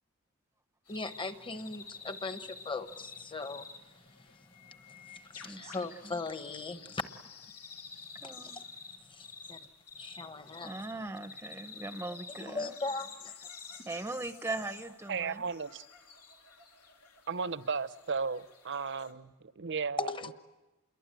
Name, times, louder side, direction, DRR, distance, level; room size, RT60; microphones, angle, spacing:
sound 1, 0.9-19.1, left 5 dB, 85° left, 3.2 m, -50 dB
voice 1, 0.9-7.0 8.2-8.6 8.9-9.6 10.0-10.8 12.4-13.5 13.8-13.9 20.0-20.3, left 3 dB, 25° left, 1.2 m, -39 dB
voice 2, 5.4-5.7 6.0-6.1 8.2-8.6 10.6-12.8 13.9-15.4, right 2 dB, 10° right, 0.8 m, -39 dB
voice 3, 15.1-15.8 17.3-20.1, right 5 dB, 55° right, 0.9 m, -35 dB
28.0 x 22.5 x 9.1 m
head